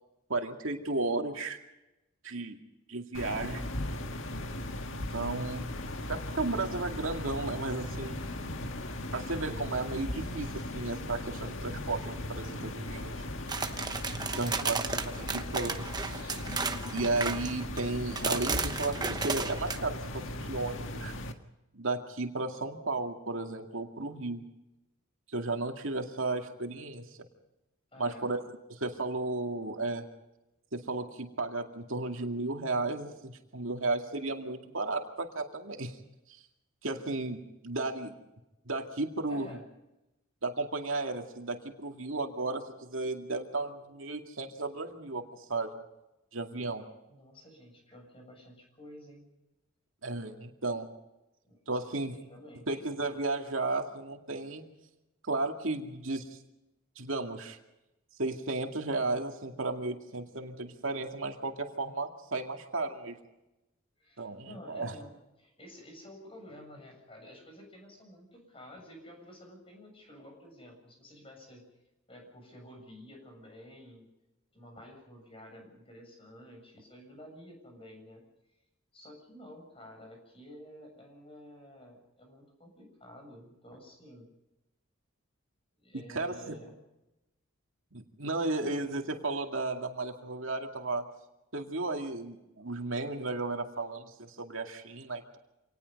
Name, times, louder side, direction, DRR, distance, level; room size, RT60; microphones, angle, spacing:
voice 1, 0.3-1.6 2.2-2.6 2.9-3.7 5.1-5.7 6.1-8.2 9.1-13.2 14.2-14.8 15.1-16.4 16.9-21.1 21.7-24.4 25.3-27.0 28.0-28.4 28.7-30.0 30.7-36.0 36.3-36.4 36.8-38.1 38.7-39.5 40.4-45.2 45.5-45.7 46.3-46.8 50.0-50.9 51.7-52.1 52.7-54.7 55.3-56.4 57.0-57.6 58.2-63.2 64.2-65.0 86.1-86.6 87.9-91.0 91.5-95.4, right 2 dB, 70° right, 3 dB, 2.3 m, -34 dB
sound 1, 3.1-21.3, left 1 dB, 70° left, 1.7 m, -38 dB
sound 2, 13.5-17.8 18.2-19.8, right 4 dB, 20° right, 1.0 m, -34 dB
voice 2, 14.2-15.3 27.9-28.3 39.3-39.6 47.1-49.3 51.4-52.8 64.0-71.7 72.1-74.1 74.5-78.3 78.9-84.3 85.8-86.7 88.3-88.8, equal, 25° left, 2 dB, 7.2 m, -51 dB
26.5 x 19.5 x 5.4 m, 0.94 s
head